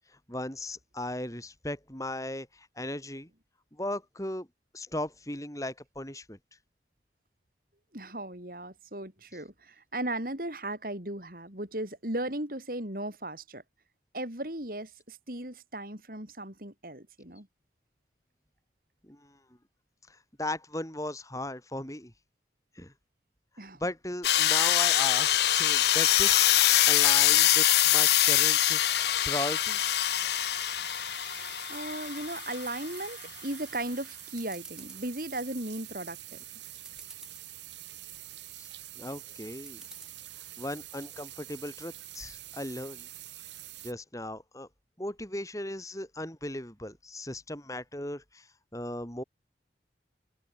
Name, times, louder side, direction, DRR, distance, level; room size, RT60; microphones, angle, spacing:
voice 1, 0.3-3.3 3.7-4.5 4.7-6.4 19.0-19.4 20.1-22.1 22.7-22.9 23.8-28.8 29.2-30.0 38.6-38.7 38.9-39.8 40.6-43.1 43.8-44.7 45.0-48.5 48.7-49.2, left 1 dB, 20° left, 4.6 m, -37 dB
voice 2, 7.9-13.6 14.1-17.5 23.6-23.9 27.4-27.5 31.7-36.4, right 1 dB, 50° right, 5.1 m, -36 dB
sound 1, 24.2-32.8, left 13 dB, 65° left, 0.7 m, -24 dB
sound 2, 25.4-43.9, right 14 dB, 85° right, 3.3 m, -46 dB
sound 3, 29.7-30.1 30.6-31.4 31.8-32.6 33.1-33.6 33.9-34.0 34.3-35.0 35.5-35.9 36.5-36.6 36.7-37.5 38.0-38.5 39.7-40.1, right 1 dB, 5° right, 5.6 m, -52 dB
head